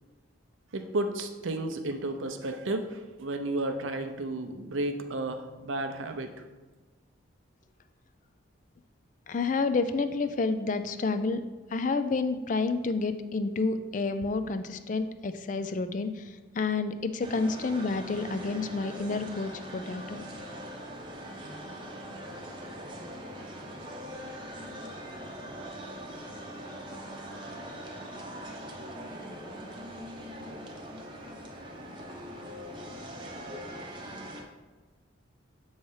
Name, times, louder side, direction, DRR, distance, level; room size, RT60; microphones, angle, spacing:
voice 1, 0.7-6.3, right 2 dB, 75° right, 6 dB, 0.6 m, -32 dB
voice 2, 9.3-11.4 11.7-20.2, left 3 dB, 40° left, 11 dB, 0.4 m, -29 dB
sound 1, 17.2-34.4, equal, 25° right, 0.7 m, -42 dB
7.6 x 3.2 x 5.4 m, 1.3 s
head